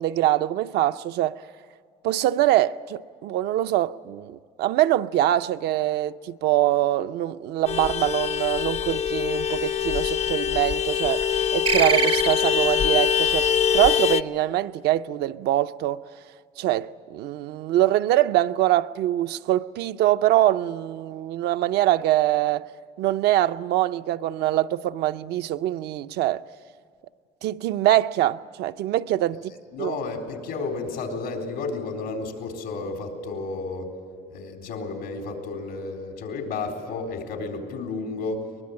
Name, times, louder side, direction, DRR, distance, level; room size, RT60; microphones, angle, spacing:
voice 1, 0.0-1.4 2.0-16.0 16.6-22.7 23.0-26.4 27.4-29.4 29.8-30.0, right 14 dB, 80° right, 0.6 m, -23 dB
Vehicle horn car horn honking, 7.7-14.2, left 9 dB, 40° left, 0.5 m, -24 dB
sound 1, 11.7-12.8, right 6 dB, 30° right, 0.5 m, -24 dB
voice 2, 29.7-33.9 34.3-38.5, left 3 dB, 90° left, 4.0 m, -32 dB
23.5 x 21.0 x 8.7 m
cardioid pair, 110°, 17 cm